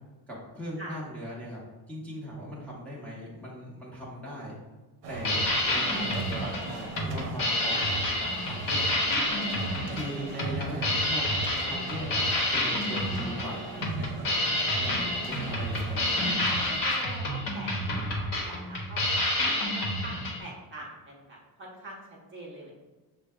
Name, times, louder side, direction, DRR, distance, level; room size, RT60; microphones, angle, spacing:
voice 1, 0.3-1.6 1.9-4.6 5.1-9.2 9.9-14.1 14.7-16.2, equal, 5° left, -7 dB, 0.8 m, -39 dB
sound 1, 5.0-16.8, right 3 dB, 65° right, 0.8 m, -41 dB
sound 2, 5.1-20.4, left 1 dB, 55° left, 1.0 m, -29 dB
voice 2, 16.8-22.9, right 1 dB, 30° right, -4 dB, 0.7 m, -45 dB
6.2 x 2.2 x 3.5 m, 1.2 s
cardioid pair, 170°, 41 cm